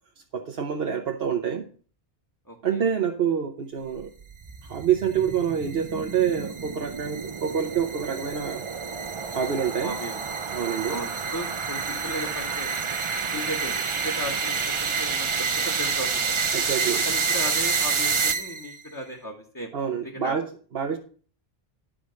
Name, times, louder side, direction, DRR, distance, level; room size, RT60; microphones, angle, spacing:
voice 1, 0.3-1.6 2.6-4.1 4.6-8.6 9.3-9.9 10.5-11.0 16.5-17.0 19.7-20.5 20.7-21.0, right 7 dB, 70° right, 3 dB, 1.1 m, -27 dB
voice 2, 2.5-2.9 9.8-10.2 10.9-12.8 13.3-15.3 15.6-16.4 17.0-19.7 20.0-20.4, equal, 20° left, -1 dB, 1.3 m, -36 dB
sound 1, 4.0-18.8, right 5 dB, 35° right, 0.6 m, -28 dB
11.0 x 5.0 x 6.3 m, 0.42 s
omnidirectional pair, 1.0 m